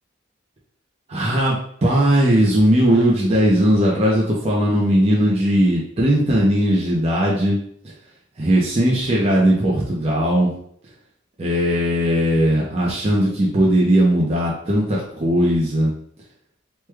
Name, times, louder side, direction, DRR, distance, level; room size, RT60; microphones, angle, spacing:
voice 1, 1.1-7.6 8.4-10.5 11.4-15.9, equal, 30° right, -4 dB, 0.5 m, -18 dB
3.1 x 2.2 x 3.3 m, 0.65 s
head